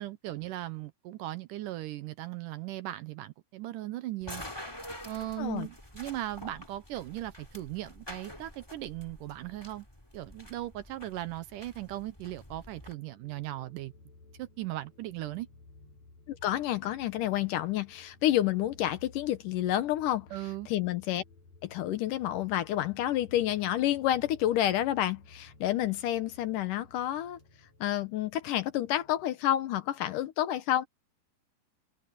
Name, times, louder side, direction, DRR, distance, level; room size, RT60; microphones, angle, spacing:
voice 1, 0.0-4.4 5.0-9.9 10.1-13.9 14.4-15.5 20.3-20.7, right 15 dB, 75° right, 2.2 m, -38 dB
sound 1, 4.2-12.9, left 1 dB, 5° left, 2.9 m, -47 dB
voice 2, 5.4-5.7 16.3-20.3 20.7-21.2 21.6-27.4 27.8-30.9, left 12 dB, 70° left, 2.4 m, -29 dB
sound 2, 13.0-29.2, left 3 dB, 50° left, 6.4 m, -56 dB
open air
omnidirectional pair, 4.2 m